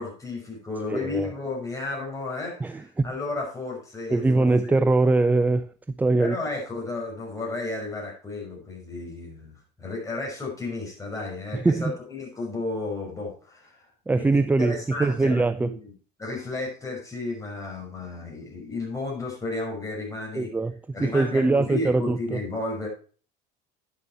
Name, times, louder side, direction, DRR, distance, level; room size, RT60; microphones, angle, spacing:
voice 1, 0.0-4.8 6.2-13.9 14.1-15.9 16.2-20.5 20.9-22.9, left 3 dB, 15° left, 5.9 m, -33 dB
voice 2, 0.9-1.3 2.6-3.1 4.1-5.7 6.0-6.4 11.5-11.9 14.1-15.7 20.3-22.4, right 3 dB, 10° right, 0.4 m, -22 dB
9.9 x 7.0 x 4.4 m
supercardioid pair, 95°, 21 cm